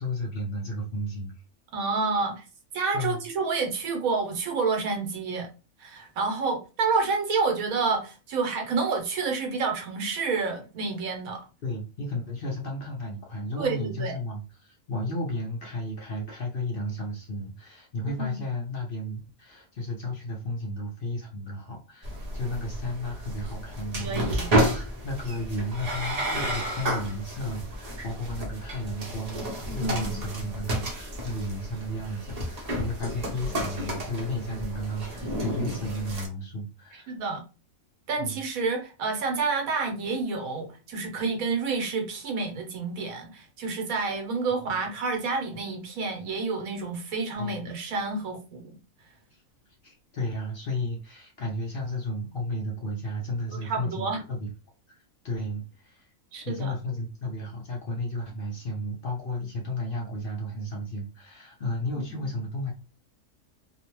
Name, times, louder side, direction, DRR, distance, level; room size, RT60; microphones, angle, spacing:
voice 1, 0.0-1.3 2.9-3.2 11.6-24.6 25.0-37.1 38.2-38.4 44.7-44.8 47.4-47.6 49.3-49.4 49.8-54.4 54.9-55.0 55.2-56.1 56.4-62.7, left 1 dB, 55° left, 0.6 m, -33 dB
voice 2, 1.7-2.4 2.7-5.5 5.8-11.4 13.6-14.2 18.2-18.4 24.0-24.5 29.8-30.2 36.9-37.4 38.1-48.8 53.5-54.2 56.3-56.7 62.1-62.2, right 4 dB, 85° right, 1.2 m, -29 dB
sound 1, 22.0-36.3, right 1 dB, 45° right, 0.5 m, -31 dB
2.8 x 2.0 x 2.9 m
omnidirectional pair, 1.4 m